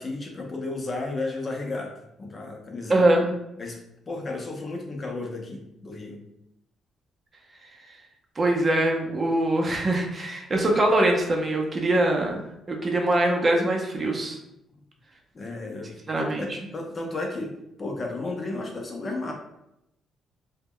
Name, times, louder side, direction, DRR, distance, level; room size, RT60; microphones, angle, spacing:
voice 1, 0.0-1.9 2.2-3.1 3.6-3.8 4.1-6.2 15.3-17.5 17.8-19.3, left 2 dB, 35° left, 1 dB, 0.5 m, -33 dB
voice 2, 2.9-3.3 8.4-12.4 12.7-14.4 16.1-16.6, right 1 dB, 35° right, 1 dB, 0.5 m, -23 dB
2.1 x 2.0 x 3.6 m, 0.83 s
cardioid pair, 90°, 0 cm